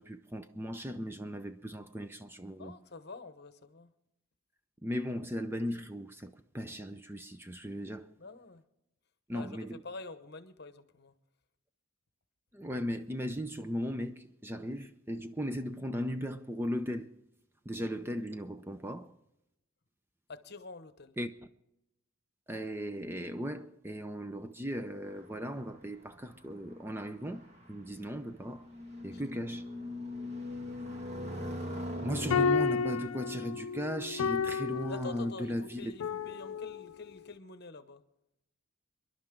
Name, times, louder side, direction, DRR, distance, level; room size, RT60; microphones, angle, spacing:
voice 1, 0.0-2.7 4.8-8.1 9.3-9.8 12.5-17.1 17.7-19.1 21.2-21.3 22.5-28.7 29.0-29.7 32.0-35.9, equal, 10° right, 0.5 m, -37 dB
voice 2, 2.6-3.9 8.2-8.6 9.3-11.1 20.3-21.2 29.1-29.2 34.9-38.0, left 3 dB, 50° left, 1.0 m, -47 dB
sound 1, 25.0-32.5, left 1 dB, 30° right, 2.2 m, -42 dB
sound 2, 32.1-37.2, left 5 dB, 80° left, 0.4 m, -32 dB
27.5 x 11.5 x 3.8 m
head